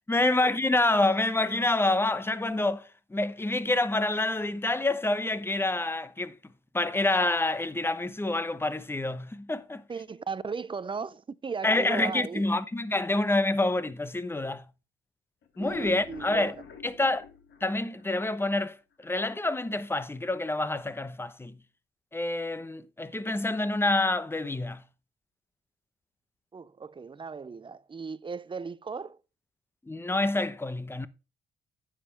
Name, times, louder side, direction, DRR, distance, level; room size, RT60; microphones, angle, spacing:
voice 1, 0.1-6.4 6.7-9.8 11.6-14.6 15.6-16.5 16.8-17.2 17.6-18.8 19.0-21.6 22.1-24.8 29.9-31.1, left 2 dB, 10° left, 0.8 m, -27 dB
voice 2, 9.9-12.5 15.6-16.6 17.0-17.1 26.5-29.2, right 5 dB, 25° right, 0.5 m, -37 dB
sound 1, 15.4-18.6 19.0-19.1 19.5-19.6 19.9-20.0, left 6 dB, 65° left, 1.8 m, -47 dB
9.8 x 7.4 x 3.3 m
cardioid pair, 90°, 20 cm